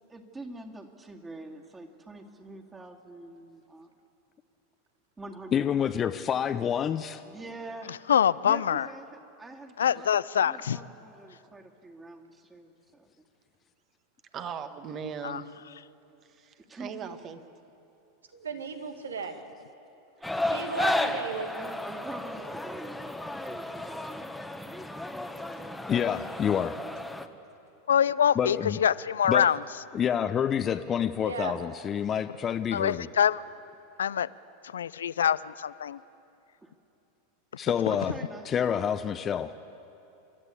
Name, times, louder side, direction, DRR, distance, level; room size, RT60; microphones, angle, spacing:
voice 1, 0.1-3.9 5.2-5.7 7.2-8.1 8.4-13.2 16.7-17.1 18.5-18.7 20.2-20.4 21.6-24.3 26.5-26.9 36.6-36.7 37.9-39.0, right 2 dB, 15° right, 2 dB, 2.3 m, -45 dB
voice 2, 5.5-7.2 25.9-26.8 28.3-28.8 29.3-29.5 29.9-33.1 37.6-38.1 38.5-39.5, left 8 dB, 30° left, 9 dB, 0.7 m, -28 dB
voice 3, 8.1-8.9 9.8-10.8 15.2-15.4 27.9-29.6 32.7-33.4 34.0-34.3 34.7-36.0 37.9-38.0, left 8 dB, 80° left, 19 dB, 0.4 m, -25 dB
voice 4, 14.3-15.5 16.4-17.4 25.1-25.7, right 6 dB, 35° right, 9 dB, 1.5 m, -39 dB
voice 5, 18.3-19.4 20.5-21.7 31.2-31.5, right 4 dB, 85° right, 6 dB, 1.8 m, -35 dB
sound 1, 20.2-27.3, left 1 dB, 5° left, 1.2 m, -33 dB
29.5 x 12.5 x 8.4 m, 2.9 s
hypercardioid pair, 90°, 0 cm